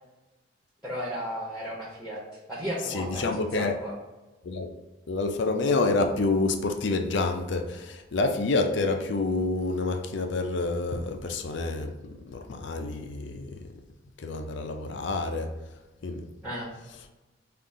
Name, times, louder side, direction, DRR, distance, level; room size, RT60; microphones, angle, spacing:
voice 1, 0.8-2.2 2.5-3.9 16.4-16.8, equal, ahead, -5 dB, 0.9 m, -34 dB
voice 2, 2.9-3.7 4.4-4.7 5.1-13.6 14.2-15.5 16.0-16.2, left 3 dB, 65° left, 6 dB, 0.5 m, -28 dB
5.4 x 2.5 x 3.6 m, 1.1 s
head